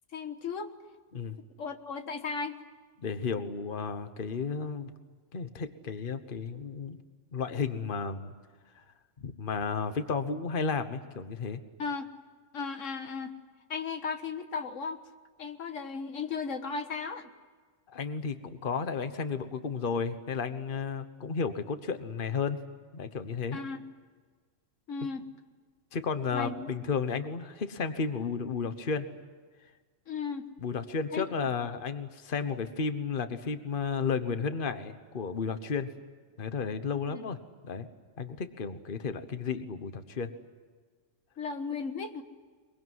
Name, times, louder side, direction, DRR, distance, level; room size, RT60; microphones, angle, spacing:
voice 1, 0.1-0.7 1.6-2.6 11.8-12.0 12.5-13.3 13.7-15.0 15.4-17.3 23.5-23.8 24.9-25.3 26.3-26.6 30.1-30.5 31.1-31.3 37.1-37.2 41.4-42.2, left 5 dB, 85° left, 7 dB, 1.7 m, -35 dB
voice 2, 3.0-4.9 5.3-7.0 7.3-8.3 9.2-11.6 17.9-22.6 22.9-23.6 25.9-29.1 30.6-35.9 36.4-37.4 37.6-37.9 38.2-40.3, left 5 dB, 45° left, 10 dB, 1.4 m, -33 dB
23.0 x 23.0 x 9.5 m, 1.5 s
omnidirectional pair, 1.3 m